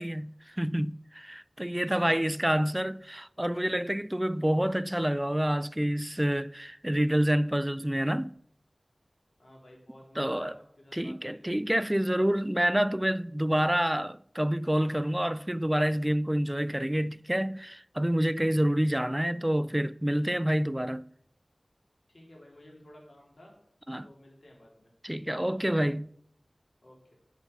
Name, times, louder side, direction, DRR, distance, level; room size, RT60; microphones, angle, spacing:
voice 1, 0.0-8.3 10.2-10.6 10.9-21.1 23.9-24.1 25.0-26.1, equal, 15° right, 0.3 m, -28 dB
voice 2, 1.7-2.5 9.4-11.6 22.1-23.5 24.0-24.9 26.8-27.1, left 1 dB, 80° left, 3.8 m, -54 dB
8.2 x 6.9 x 7.0 m
wide cardioid pair, 60°, 0 cm